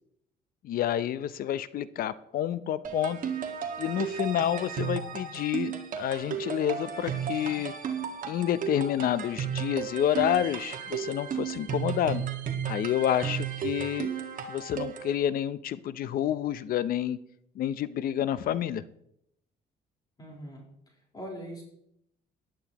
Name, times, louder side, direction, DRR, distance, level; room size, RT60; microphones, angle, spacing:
voice 1, 0.6-3.2 3.8-7.7 8.3-12.2 12.7-14.1 14.5-17.2 17.6-18.8, left 10 dB, 60° left, 15 dB, 0.7 m, -29 dB
sound 1, 2.8-15.1, right 8 dB, 55° right, 1.8 m, -34 dB
voice 2, 20.2-20.6 21.1-21.6, right 1 dB, 25° left, -1 dB, 4.3 m, -41 dB
18.0 x 11.0 x 3.0 m, 0.76 s
cardioid pair, 110°, 17 cm